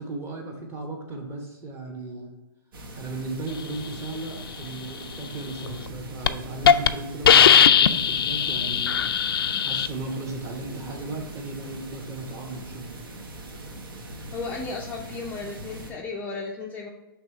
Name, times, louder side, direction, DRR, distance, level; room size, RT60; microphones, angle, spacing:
voice 1, 0.0-2.3 2.9-8.9 9.6-12.9, right 3 dB, 20° right, 1 dB, 1.1 m, -36 dB
sound 1, 2.7-15.9, right 1 dB, 65° right, 1.3 m, -41 dB
Hiss, 5.7-5.9 6.3-6.4 6.7-6.9 7.3-9.9, left 8 dB, 75° left, 0.4 m, -18 dB
voice 2, 14.3-16.9, left 4 dB, 15° left, -1 dB, 0.5 m, -34 dB
6.0 x 3.5 x 4.6 m, 1.0 s
hypercardioid pair, 140°, 12 cm